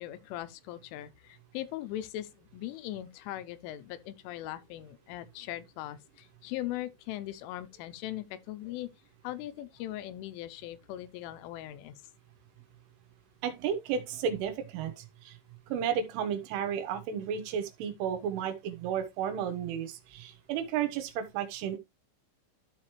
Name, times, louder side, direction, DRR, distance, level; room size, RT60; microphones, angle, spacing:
voice 1, 0.0-8.9 9.2-12.0, left 14 dB, 85° left, 3.2 m, -40 dB
voice 2, 13.4-15.4 15.7-21.8, right 8 dB, 80° right, 3.6 m, -33 dB
12.5 x 4.8 x 3.1 m
omnidirectional pair, 5.7 m